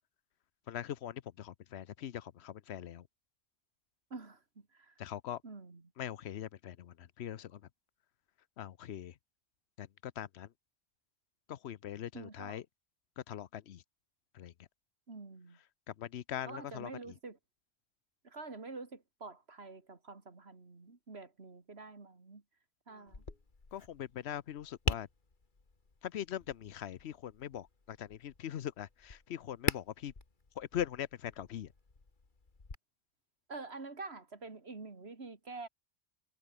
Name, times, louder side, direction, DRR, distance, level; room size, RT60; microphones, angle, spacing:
voice 1, 0.7-3.1 5.0-5.4 6.0-7.6 8.6-9.1 9.8-10.5 11.5-12.6 13.2-13.8 14.3-14.5 15.9-16.9 22.9-23.0 23.7-25.1 26.0-30.1 30.6-31.7, left 10 dB, 85° left, 1.0 m, -41 dB
voice 2, 4.1-5.0 5.4-5.9 12.1-12.6 15.1-15.6 16.5-17.4 18.2-22.4 22.9-23.2 33.5-35.7, right 3 dB, 85° right, 2.8 m, -47 dB
Tap, 23.1-32.7, left 3 dB, 50° left, 2.3 m, -43 dB
omnidirectional pair, 1.1 m